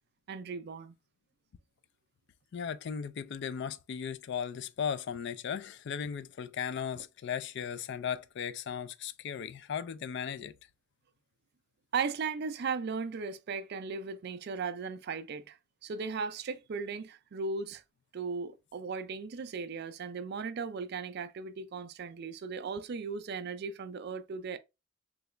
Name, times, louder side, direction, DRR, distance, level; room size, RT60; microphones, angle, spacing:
voice 1, 0.3-0.9 7.0-7.1 11.9-17.8 18.1-24.6, right 5 dB, 50° right, 0.4 m, -37 dB
voice 2, 2.5-10.5, left 7 dB, 55° left, 0.3 m, -36 dB
3.8 x 2.3 x 3.1 m
head